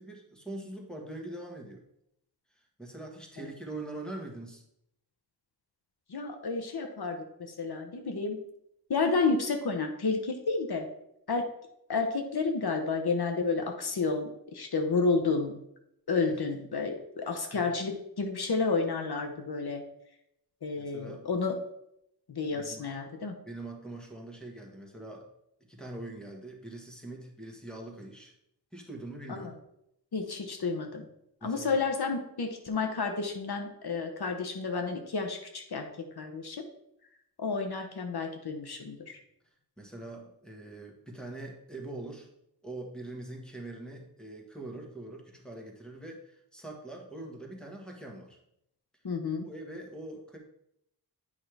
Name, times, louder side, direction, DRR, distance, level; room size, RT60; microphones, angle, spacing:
voice 1, 0.0-1.8 2.5-4.6 16.3-16.4 17.5-17.7 20.8-21.3 22.5-22.9 23.4-25.3 25.7-28.3 28.7-29.5 31.4-31.8 39.8-42.3 42.6-48.4 49.4-50.4, right 2 dB, ahead, 1 dB, 1.5 m, -43 dB
voice 2, 6.1-8.4 8.9-10.9 11.3-11.5 11.9-15.6 16.1-19.8 20.6-21.5 22.3-23.4 29.3-29.5 30.1-31.1 31.4-35.9 36.2-36.6 37.4-39.2 49.0-49.5, left 4 dB, 80° left, 4 dB, 0.9 m, -31 dB
8.4 x 5.4 x 3.4 m, 0.78 s
wide cardioid pair, 80°, 38 cm